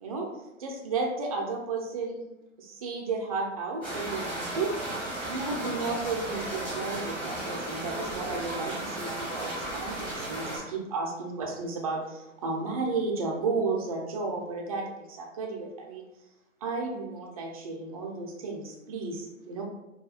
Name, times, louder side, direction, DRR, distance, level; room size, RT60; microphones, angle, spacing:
voice 1, 0.6-2.2 2.6-4.7 5.3-16.0 16.6-19.6, right 3 dB, 30° right, 1 dB, 0.4 m, -33 dB
sound 1, 3.8-10.6, right 1 dB, 5° left, 0.7 m, -35 dB
4.2 x 2.2 x 2.3 m, 0.99 s
figure-of-eight pair, 125°, 39 cm